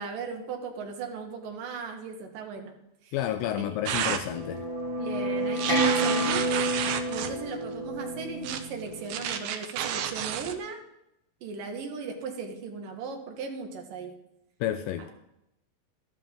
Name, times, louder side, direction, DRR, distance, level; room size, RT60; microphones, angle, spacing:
voice 1, 0.0-2.8 3.0-3.2 3.6-3.8 5.0-6.6 7.1-10.8 11.4-14.1, right 5 dB, 70° right, 2 dB, 3.2 m, -37 dB
voice 2, 3.1-4.7 14.6-15.1, left 11 dB, 80° left, 9 dB, 2.2 m, -30 dB
sound 1, 3.9-4.2 5.6-7.3 8.4-8.6 9.1-10.5, right 9 dB, 85° right, 2.7 m, -30 dB
sound 2, 4.3-9.4, right 1 dB, 20° right, 0.7 m, -29 dB
12.5 x 12.5 x 3.8 m, 0.84 s
omnidirectional pair, 4.2 m